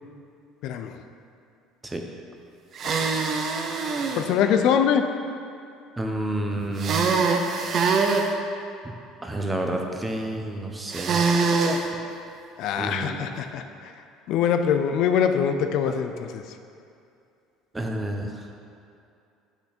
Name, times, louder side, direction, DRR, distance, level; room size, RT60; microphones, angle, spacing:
voice 1, 0.6-0.9 2.8-2.9 4.2-5.1 12.6-13.6 14.3-16.4, left 8 dB, 65° left, 7 dB, 0.4 m, -23 dB
sound 1, 2.7-4.2 6.8-8.3 10.9-11.8, right 4 dB, 45° right, 0.7 m, -23 dB
voice 2, 6.0-7.0 9.2-11.2 12.8-13.2 17.7-18.3, right 1 dB, 15° right, 2 dB, 1.0 m, -29 dB
8.1 x 5.9 x 4.3 m, 2.5 s
supercardioid pair, 90°, 0 cm